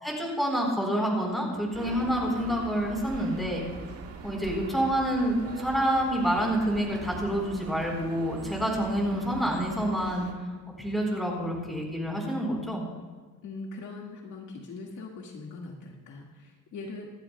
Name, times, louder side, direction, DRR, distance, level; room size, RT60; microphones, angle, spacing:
voice 1, 0.0-3.7 4.2-10.3 10.8-12.8, equal, ahead, -1 dB, 4.2 m, -28 dB
sound 1, 1.7-10.3, right 5 dB, 45° right, 1.9 m, -42 dB
voice 2, 13.4-17.1, left 3 dB, 55° left, -1 dB, 1.9 m, -41 dB
26.0 x 11.5 x 2.3 m, 1.4 s
cardioid pair, 140°, 36 cm